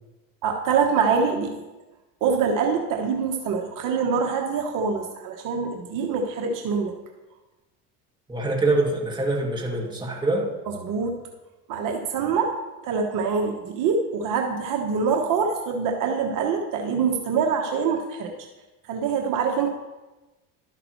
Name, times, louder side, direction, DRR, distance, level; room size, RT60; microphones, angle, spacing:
voice 1, 0.4-1.6 2.2-6.9 10.8-11.2 11.7-12.5 12.8-18.3 18.9-19.7, right 5 dB, 60° right, 2 dB, 1.1 m, -24 dB
voice 2, 8.3-10.5, right 2 dB, 10° right, -1 dB, 1.9 m, -24 dB
12.0 x 5.9 x 3.1 m, 1.1 s
supercardioid pair, 95°, 36 cm